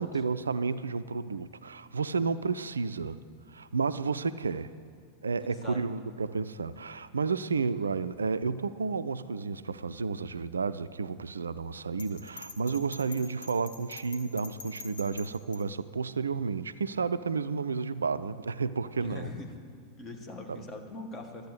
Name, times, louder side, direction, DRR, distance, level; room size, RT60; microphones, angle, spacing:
voice 1, 0.0-3.2 3.5-4.7 5.2-19.3 20.5-20.6, right 4 dB, 75° right, 14 dB, 0.3 m, -31 dB
voice 2, 5.5-5.8 19.0-19.5 20.0-21.5, left 3 dB, 25° left, 3 dB, 1.5 m, -41 dB
Bell, 12.0-15.6, left 4 dB, 65° left, 1.5 m, -45 dB
12.5 x 8.2 x 8.2 m, 2.3 s
figure-of-eight pair, 90°, 0 cm